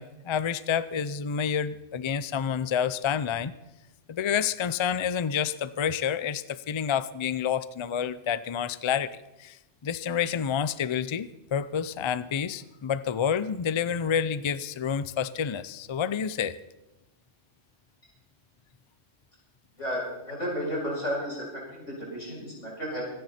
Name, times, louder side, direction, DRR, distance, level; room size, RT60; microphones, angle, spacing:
voice 1, 0.0-3.5 4.1-9.1 9.4-16.6, left 8 dB, 50° left, 15 dB, 0.3 m, -29 dB
voice 2, 19.8-23.0, equal, 80° left, -4 dB, 6.8 m, -33 dB
25.5 x 10.0 x 4.3 m, 0.96 s
omnidirectional pair, 1.2 m